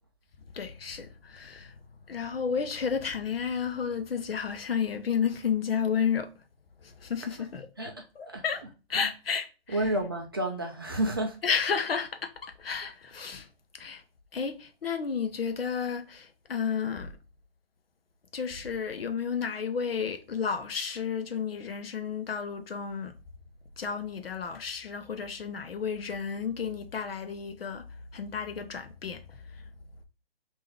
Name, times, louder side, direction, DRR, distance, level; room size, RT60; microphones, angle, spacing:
voice 1, 0.5-1.8 2.1-6.3 6.8-7.9 8.2-8.6 8.9-9.8 11.4-13.5 13.8-14.0 14.3-17.1 18.3-23.1 23.8-27.9 28.1-29.4, left 6 dB, 65° left, 0.8 m, -32 dB
voice 2, 7.8-8.4 8.9-9.1 9.7-11.5, right 1 dB, 25° right, 0.4 m, -31 dB
3.6 x 2.6 x 3.2 m
figure-of-eight pair, 140°, 31 cm